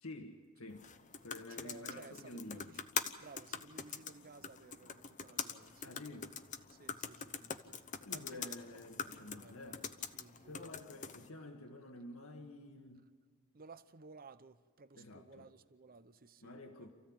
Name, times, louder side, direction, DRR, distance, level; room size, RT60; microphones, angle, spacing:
voice 1, 0.0-0.8 1.2-2.7 5.8-6.3 8.0-9.8 10.5-13.1 14.9-15.5 16.4-16.9, left 2 dB, 85° left, 1.8 m, -50 dB
sound 1, 0.7-11.3, left 7 dB, 35° left, 0.9 m, -44 dB
voice 2, 1.5-2.9 3.2-6.0 6.7-9.9 10.1-10.8 13.5-16.9, right 4 dB, 45° right, 0.8 m, -57 dB
28.0 x 15.0 x 8.8 m
head